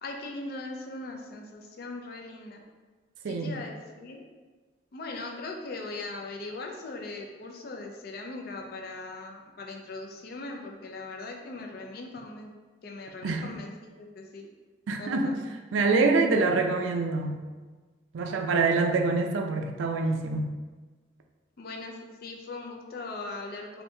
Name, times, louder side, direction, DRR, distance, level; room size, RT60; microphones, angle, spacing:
voice 1, 0.0-2.6 3.3-4.2 4.9-12.5 12.8-14.5 15.0-15.4 21.6-23.8, left 2 dB, 50° left, 2 dB, 0.4 m, -40 dB
voice 2, 3.2-3.6 13.2-13.4 14.9-15.4 15.7-17.4 18.1-20.5, right 3 dB, 85° right, 4 dB, 0.4 m, -25 dB
3.3 x 2.6 x 2.6 m, 1.3 s
head